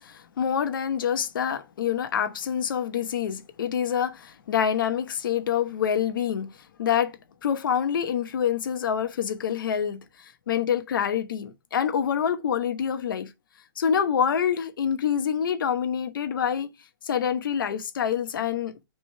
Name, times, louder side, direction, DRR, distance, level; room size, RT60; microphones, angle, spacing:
voice 1, 0.0-6.5 6.8-10.0 10.5-13.3 13.8-16.7 17.0-18.8, left 8 dB, 70° left, 1.0 m, -26 dB
6.1 x 3.5 x 4.4 m
hypercardioid pair, 150°, 11 cm